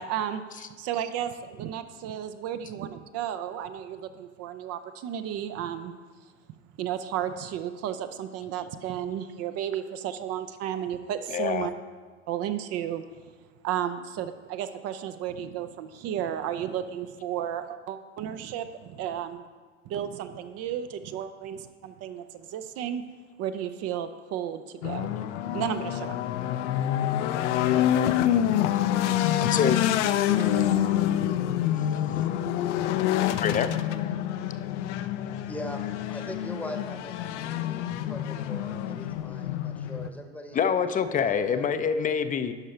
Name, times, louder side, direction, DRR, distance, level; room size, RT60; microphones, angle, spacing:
voice 1, 0.0-5.9 6.8-11.7 12.3-13.0 13.6-19.5 19.9-23.0 23.4-25.1 25.5-26.2, right 10 dB, 45° right, 10 dB, 0.5 m, -33 dB
voice 2, 11.3-11.7 29.4-29.8 33.4-33.7 40.5-42.5, left 7 dB, 20° left, 10 dB, 0.5 m, -25 dB
sound 1, 24.8-40.1, left 11 dB, 70° left, 0.6 m, -27 dB
voice 3, 35.5-35.8 36.1-40.6 40.9-41.7, left 1 dB, 5° left, 5 dB, 0.9 m, -41 dB
11.0 x 5.4 x 4.3 m, 1.5 s
hypercardioid pair, 90°, 37 cm